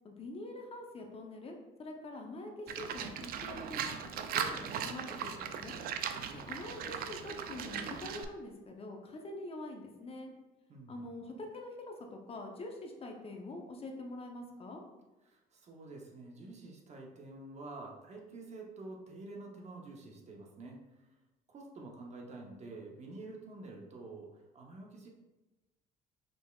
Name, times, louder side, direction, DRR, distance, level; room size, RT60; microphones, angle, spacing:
voice 1, 0.0-4.0 4.3-5.8 6.3-10.3 10.9-14.8, left 2 dB, 35° left, 2 dB, 0.6 m, -45 dB
Livestock farm animals working animals, 2.7-8.2, right 8 dB, 60° right, 0.4 m, -38 dB
voice 2, 6.1-6.5 10.7-11.1 15.2-21.1 21.5-25.1, right 2 dB, 40° right, 0 dB, 0.8 m, -48 dB
5.2 x 3.4 x 2.3 m, 1.0 s
cardioid pair, 110°, 17 cm